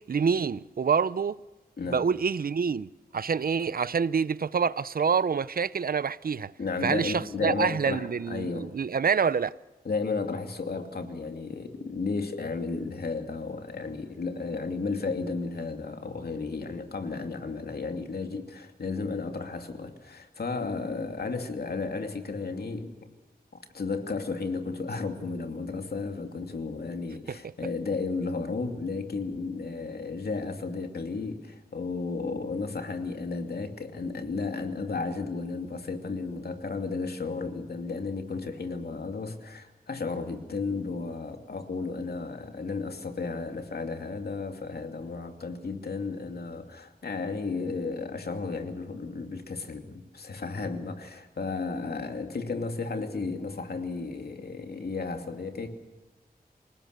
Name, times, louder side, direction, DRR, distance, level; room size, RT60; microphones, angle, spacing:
voice 1, 0.1-1.4 1.9-6.5 6.8-9.5, right 6 dB, 70° right, 0.6 m, -27 dB
voice 2, 6.6-8.7 9.8-22.9 23.7-55.7, left 4 dB, 90° left, 2.6 m, -33 dB
27.5 x 18.0 x 6.8 m
wide cardioid pair, 100°, 16 cm